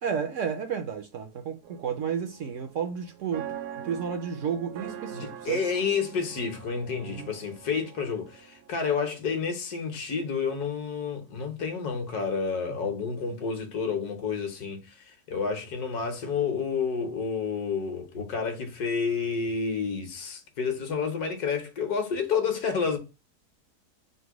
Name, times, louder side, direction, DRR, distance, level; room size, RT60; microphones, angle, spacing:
voice 1, 0.0-3.6 3.8-5.6 7.0-7.3 12.7-12.9, right 7 dB, 60° right, 0.9 m, -32 dB
sound 1, 1.6-8.7, right 9 dB, 85° right, 1.2 m, -43 dB
voice 2, 5.1-23.0, left 5 dB, 75° left, 1.5 m, -30 dB
4.0 x 2.2 x 4.6 m
omnidirectional pair, 1.7 m